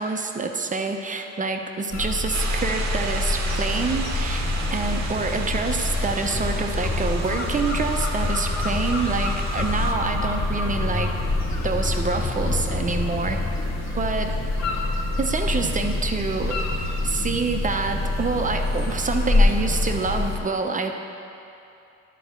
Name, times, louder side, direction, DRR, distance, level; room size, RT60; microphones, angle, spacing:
voice 1, 0.0-4.4 4.7-11.1 11.6-13.4 13.9-14.4 15.2-16.6 17.0-20.9, right 4 dB, 25° right, 4 dB, 0.8 m, -27 dB
sound 1, 1.9-20.4, left 2 dB, 60° left, 1.5 m, -26 dB
sound 2, 2.3-9.9, right 4 dB, 65° right, 0.9 m, -35 dB
sound 3, 3.8-13.8, left 4 dB, 10° left, 0.6 m, -34 dB
11.0 x 4.2 x 6.7 m, 2.8 s
cardioid pair, 90°, 30 cm